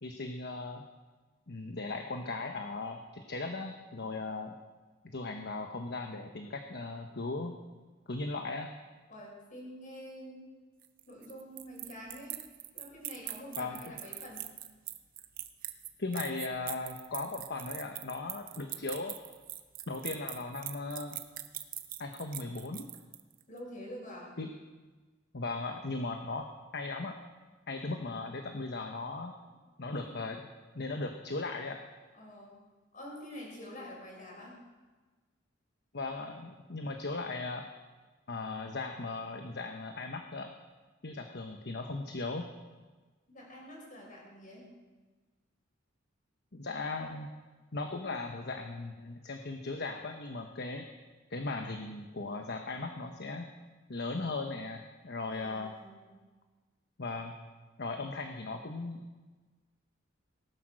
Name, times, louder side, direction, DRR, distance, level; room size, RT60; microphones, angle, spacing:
voice 1, 0.0-0.8 1.5-4.5 5.0-7.6 8.1-8.7 13.6-13.9 16.0-19.2 19.9-21.2 22.0-22.9 24.4-24.5 25.3-26.5 26.7-27.2 27.7-29.4 29.8-30.4 30.7-31.8 35.9-37.7 38.3-40.5 41.0-42.5 46.5-47.3 47.7-50.8 51.3-53.5 53.9-55.7 57.0-57.3 57.8-59.0, left 3 dB, 55° left, 4 dB, 1.1 m, -37 dB
voice 2, 9.1-10.5 11.1-12.4 12.7-14.4 18.3-18.7 23.5-24.4 27.9-28.1 29.9-30.2 32.1-32.6 32.9-34.5 43.3-44.7 55.3-56.1, equal, 40° left, -2 dB, 6.6 m, -47 dB
sound 1, 10.8-23.4, right 12 dB, 45° right, 0.9 m, -42 dB
18.5 x 11.0 x 6.4 m, 1.3 s
head